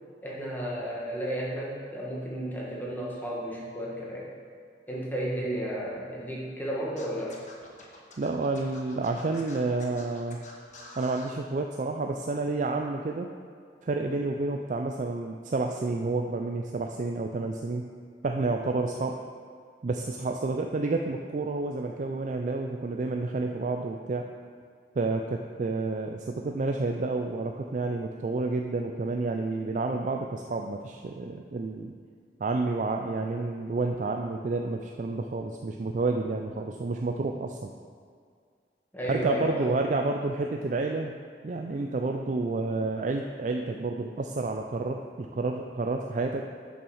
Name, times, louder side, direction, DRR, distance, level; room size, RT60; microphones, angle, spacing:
voice 1, 0.2-4.3 4.9-7.4 38.9-39.7, equal, 10° left, -5 dB, 1.5 m, -33 dB
Scratching (performance technique), 7.0-11.3, left 2 dB, 45° left, 1.2 m, -48 dB
voice 2, 8.2-10.4 11.0-13.3 13.8-17.9 18.2-19.2 19.8-24.3 25.0-31.9 32.4-37.7 39.1-41.1 41.4-46.5, right 3 dB, 45° right, 3 dB, 0.4 m, -30 dB
7.0 x 5.8 x 6.3 m, 2.1 s
head